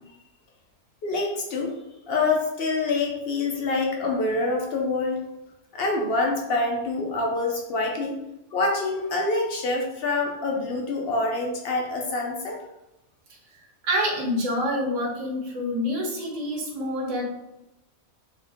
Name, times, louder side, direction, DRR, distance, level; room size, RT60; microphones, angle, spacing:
voice 1, 1.0-1.7 2.1-5.3 5.7-8.2 8.5-12.6, left 3 dB, 65° left, 1 dB, 0.6 m, -26 dB
voice 2, 13.8-17.2, equal, 35° right, -2 dB, 0.7 m, -27 dB
2.8 x 2.6 x 3.4 m, 0.94 s
omnidirectional pair, 1.4 m